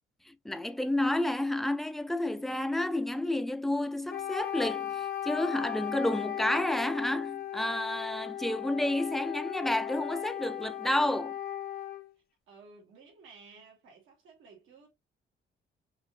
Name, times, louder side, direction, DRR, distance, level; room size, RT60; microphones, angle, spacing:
voice 1, 0.3-11.4, left 1 dB, ahead, 0.4 m, -30 dB
Wind instrument woodwind instrument, 4.1-12.1, left 11 dB, 50° left, 0.7 m, -37 dB
voice 2, 12.5-14.9, right 4 dB, 85° right, 2.2 m, -54 dB
5.5 x 2.8 x 2.3 m
cardioid pair, 90°, 20 cm